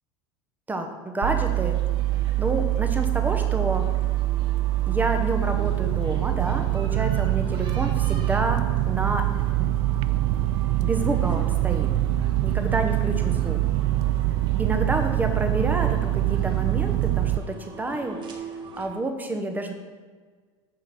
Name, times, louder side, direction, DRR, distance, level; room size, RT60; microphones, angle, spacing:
voice 1, 0.7-1.8 2.4-3.9 4.9-9.3 9.6-9.7 10.8-11.9 12.4-13.6 14.6-18.2 18.8-19.7, right 2 dB, 10° right, 5 dB, 0.9 m, -29 dB
sound 1, 1.2-17.4, right 15 dB, 70° right, 0.4 m, -24 dB
sound 2, 1.4-18.9, right 3 dB, 35° right, 1.2 m, -42 dB
9.5 x 3.8 x 5.8 m, 1.5 s
supercardioid pair, 140°, 15 cm